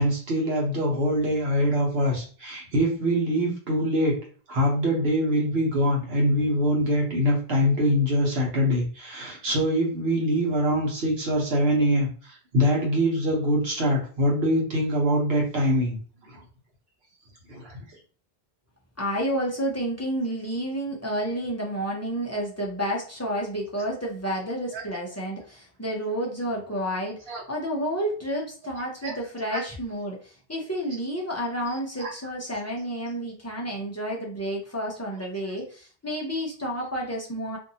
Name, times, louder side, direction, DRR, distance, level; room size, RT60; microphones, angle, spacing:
voice 1, 0.0-4.2 4.5-16.0 17.5-17.8 24.7-24.8 27.3-27.4 29.0-29.1 29.5-29.6 32.0-32.1, equal, 75° right, -2 dB, 1.2 m, -24 dB
voice 2, 19.0-37.6, equal, 20° left, -3 dB, 0.5 m, -30 dB
2.6 x 2.6 x 2.7 m, 0.40 s
omnidirectional pair, 1.1 m